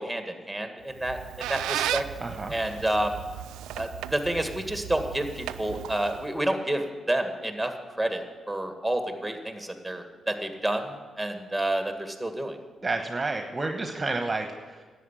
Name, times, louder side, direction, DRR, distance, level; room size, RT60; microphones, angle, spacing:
voice 1, 0.0-2.0 2.5-3.2 3.7-7.7 8.0-12.6, right 1 dB, ahead, 6 dB, 1.9 m, -29 dB
Squeak, 0.9-6.4, right 12 dB, 80° right, 0.4 m, -35 dB
voice 2, 2.2-2.5 12.8-14.8, right 3 dB, 30° right, 5 dB, 1.1 m, -30 dB
11.0 x 8.2 x 8.3 m, 1.4 s
hypercardioid pair, 45°, 0 cm